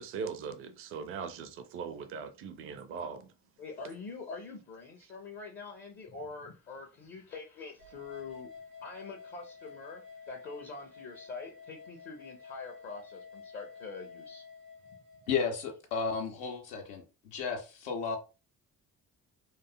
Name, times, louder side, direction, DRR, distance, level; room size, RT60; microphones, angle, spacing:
voice 1, 0.0-3.3, right 6 dB, 30° right, 0.4 m, -40 dB
voice 2, 3.6-8.5 8.8-14.4, left 4 dB, 25° left, 0.5 m, -44 dB
sound 1, 7.8-15.5, left 5 dB, 90° right, 0.7 m, -50 dB
voice 3, 15.3-18.2, left 5 dB, 65° left, 0.6 m, -33 dB
2.5 x 2.3 x 2.2 m
figure-of-eight pair, 45°, 47 cm